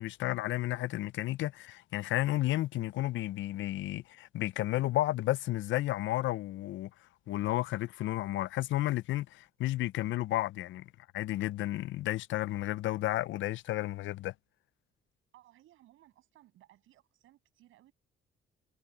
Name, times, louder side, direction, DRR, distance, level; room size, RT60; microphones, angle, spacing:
voice 1, 0.0-6.9 7.3-10.9 11.1-14.3, left 16 dB, 75° left, 0.4 m, -32 dB
voice 2, 15.3-17.9, right 14 dB, 85° right, 7.9 m, -61 dB
cardioid pair, 90°, 20 cm